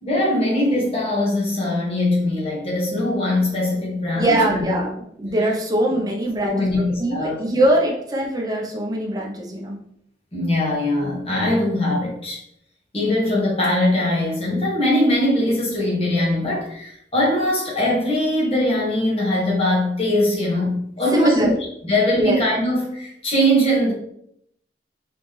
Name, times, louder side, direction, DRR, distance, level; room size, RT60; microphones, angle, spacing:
voice 1, 0.0-4.7 5.9-6.0 6.4-7.5 10.3-12.4 12.9-21.5 21.8-23.9, left 1 dB, 35° left, -5 dB, 1.6 m, -21 dB
voice 2, 4.2-9.8 21.1-21.5 22.1-22.4, right 1 dB, 20° right, -2 dB, 0.9 m, -22 dB
4.2 x 3.8 x 3.3 m, 0.72 s
head